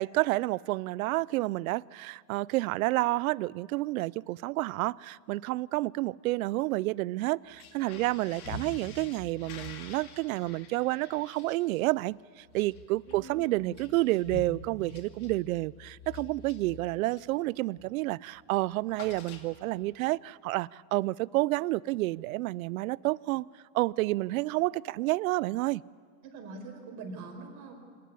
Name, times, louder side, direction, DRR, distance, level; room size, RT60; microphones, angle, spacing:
voice 1, 0.0-23.5 23.7-25.8, right 19 dB, 75° right, 0.5 m, -30 dB
sound 1, 7.4-17.4 17.7-18.0 18.3-19.9, left 4 dB, 80° left, 2.5 m, -47 dB
voice 2, 13.1-13.7 26.2-27.7, right 3 dB, 45° right, 4.9 m, -44 dB
26.5 x 10.5 x 9.7 m
supercardioid pair, 135°, 42 cm